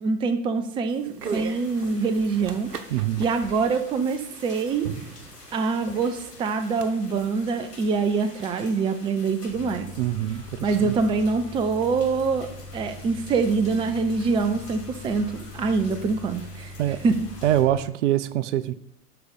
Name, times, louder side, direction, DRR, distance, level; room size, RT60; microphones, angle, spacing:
voice 1, 0.0-2.7 3.2-4.9 5.5-9.9 10.6-16.7 17.0-17.2, right 4 dB, 10° right, 0.5 m, -25 dB
sound 1, 0.9-6.9, right 6 dB, 80° right, 1.0 m, -39 dB
sound 2, 1.2-17.6, left 2 dB, 85° left, 2.8 m, -47 dB
voice 2, 2.9-3.2 10.0-11.0 16.8-17.0 17.4-18.7, right 13 dB, 50° right, 0.7 m, -24 dB
sound 3, 9.5-17.8, left 3 dB, 60° left, 3.4 m, -42 dB
12.5 x 5.5 x 5.2 m
figure-of-eight pair, 95°, 46 cm